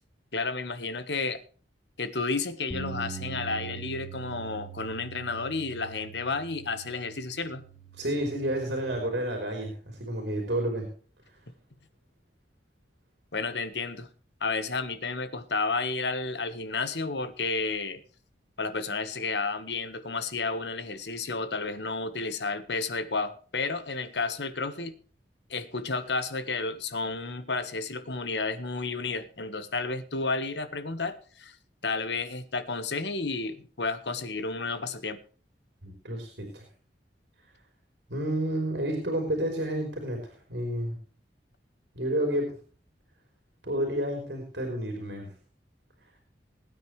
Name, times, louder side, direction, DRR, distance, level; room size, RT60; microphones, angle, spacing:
voice 1, 0.3-1.4 2.0-7.6 13.3-14.1 14.4-18.0 18.6-24.9 25.5-31.6 31.8-35.2, left 3 dB, 75° left, 11 dB, 1.4 m, -31 dB
Bass guitar, 2.7-9.0, right 6 dB, 5° left, 1.4 m, -43 dB
voice 2, 8.0-10.9 11.3-11.4 35.8-36.6 38.1-41.0 41.9-42.5 43.6-45.3, right 1 dB, 75° right, 3 dB, 3.8 m, -30 dB
21.0 x 9.3 x 3.2 m, 0.40 s
head